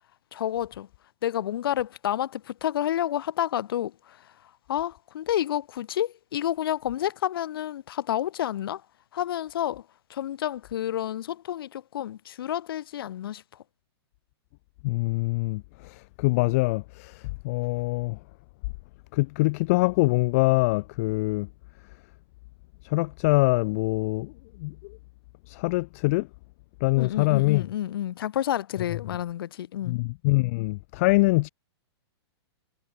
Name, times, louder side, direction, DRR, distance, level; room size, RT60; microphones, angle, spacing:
voice 1, 0.3-0.9 1.2-4.3 4.7-8.8 9.1-9.8 10.1-13.4 26.9-30.0, left 11 dB, 55° left, 2.7 m, -29 dB
voice 2, 14.8-18.2 19.1-21.5 22.8-25.0 25.5-26.3 26.8-27.6 28.8-29.0 29.8-31.5, left 23 dB, 35° left, 1.3 m, -24 dB
hypercardioid pair, 170°, 14 cm